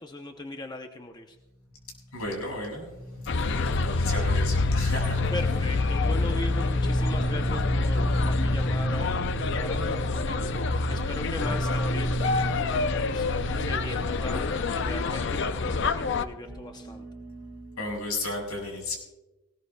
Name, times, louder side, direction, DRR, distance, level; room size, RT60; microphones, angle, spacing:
voice 1, 0.0-1.4 5.3-12.3 12.6-17.1, left 2 dB, 20° left, 5 dB, 0.7 m, -39 dB
sound 1, 1.7-2.2 2.9-17.8, right 1 dB, 10° right, 3.2 m, -34 dB
voice 2, 2.1-2.9 3.4-5.3 17.8-19.0, left 2 dB, 80° left, 1 dB, 5.8 m, -34 dB
sound 2, 3.3-16.3, left 3 dB, 55° left, 0.5 m, -27 dB
19.0 x 19.0 x 2.3 m, 1.0 s
head